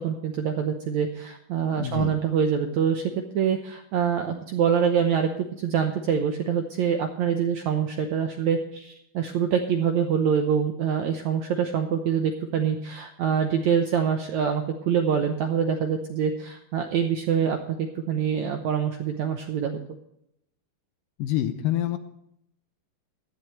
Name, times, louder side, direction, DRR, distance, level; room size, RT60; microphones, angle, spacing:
voice 1, 0.0-3.0 3.3-19.8, right 7 dB, 75° right, 5 dB, 1.7 m, -25 dB
voice 2, 1.8-2.2 21.2-22.0, left 12 dB, 75° left, 9 dB, 2.2 m, -26 dB
16.5 x 11.5 x 3.2 m, 0.77 s
omnidirectional pair, 4.4 m